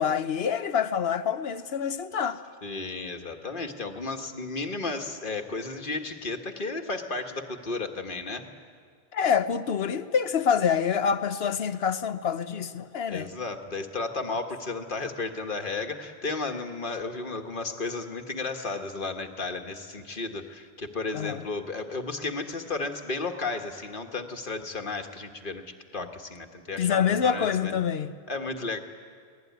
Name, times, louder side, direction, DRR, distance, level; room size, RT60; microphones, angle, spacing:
voice 1, 0.0-2.4 9.1-13.3 21.1-21.4 26.8-28.1, left 7 dB, 70° left, 1.1 m, -26 dB
voice 2, 2.6-8.4 13.1-25.6 25.9-27.7 28.3-28.8, left 3 dB, 50° left, 1.7 m, -33 dB
24.5 x 18.5 x 9.4 m
omnidirectional pair, 1.1 m